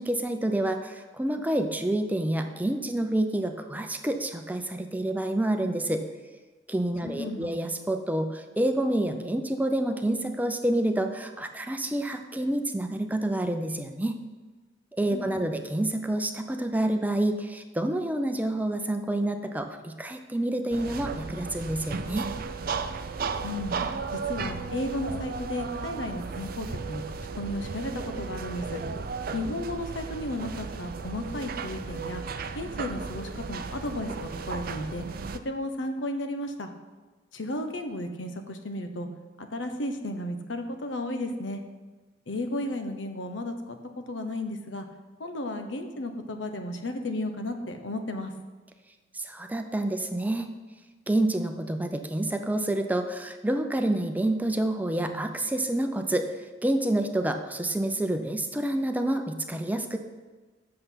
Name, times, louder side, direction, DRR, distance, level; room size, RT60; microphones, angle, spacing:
voice 1, 0.0-6.0 6.7-14.2 15.0-22.3 49.1-50.5 51.1-56.3 56.6-60.0, right 1 dB, 10° right, 6 dB, 0.6 m, -28 dB
voice 2, 7.1-7.5 15.1-15.5 23.4-23.8 24.1-28.8 29.3-32.2 32.6-35.1 35.4-36.7 37.3-39.1 39.4-41.6 42.3-44.9 45.2-48.3, left 1 dB, 90° left, 6 dB, 1.0 m, -34 dB
sound 1, 20.7-35.4, right 5 dB, 50° right, 0.5 m, -35 dB
8.1 x 6.6 x 5.7 m, 1.3 s
head